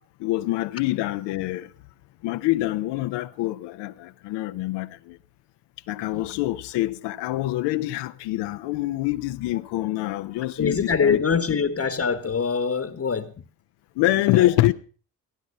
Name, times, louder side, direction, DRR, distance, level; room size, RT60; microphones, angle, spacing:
voice 1, 0.2-1.7 2.2-5.2 5.9-11.2 11.5-11.6 14.0-14.7, left 16 dB, 75° left, 0.8 m, -25 dB
voice 2, 10.6-13.3 14.3-14.5, left 6 dB, 35° left, 1.3 m, -24 dB
16.5 x 10.0 x 5.3 m
hypercardioid pair, 50°, 42 cm